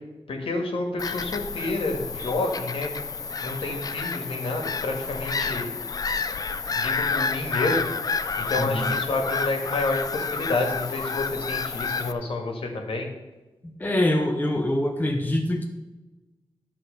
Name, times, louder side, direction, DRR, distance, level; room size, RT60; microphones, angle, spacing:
voice 1, 0.3-2.9 3.4-5.7 6.7-7.9 8.4-13.1, left 2 dB, 75° left, 2 dB, 1.9 m, -29 dB
Bird vocalization bird call bird song / Gull seagull, 1.0-12.1, left 5 dB, 40° left, 0.4 m, -29 dB
voice 2, 8.6-8.9 13.8-15.7, left 1 dB, 20° left, 3 dB, 0.9 m, -24 dB
12.5 x 4.2 x 6.7 m, 1.1 s
wide cardioid pair, 140°, 10 cm